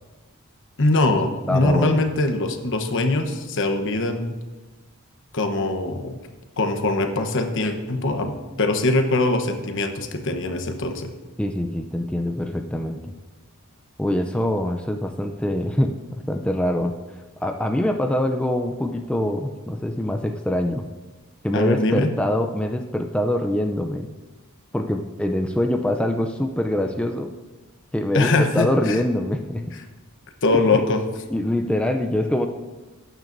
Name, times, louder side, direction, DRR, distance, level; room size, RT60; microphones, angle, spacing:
voice 1, 0.8-4.3 5.3-6.1 6.6-11.1 21.5-22.1 28.1-29.0 30.4-31.0, left 2 dB, 60° left, 6 dB, 1.0 m, -22 dB
voice 2, 1.5-2.1 11.4-13.0 14.0-16.9 17.4-20.9 21.4-24.1 24.7-27.3 27.9-29.6 30.5-30.9 31.3-32.5, left 1 dB, 5° left, 4 dB, 0.5 m, -24 dB
18.5 x 9.1 x 2.6 m, 1.2 s
head